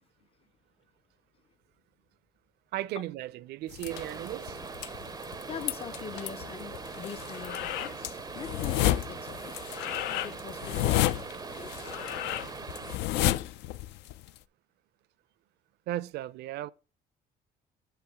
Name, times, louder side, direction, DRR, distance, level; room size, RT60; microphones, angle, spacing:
voice 1, 2.7-4.6 15.9-16.7, right 14 dB, 75° right, 0.5 m, -36 dB
sound 1, 3.7-14.4, left 14 dB, 85° left, 0.4 m, -32 dB
sound 2, 3.9-13.0, right 5 dB, 20° right, 0.4 m, -42 dB
voice 2, 5.5-9.6 10.1-11.3 11.6-11.8, left 8 dB, 35° left, 0.5 m, -43 dB
8.0 x 7.0 x 3.5 m
cardioid pair, 110°, 17 cm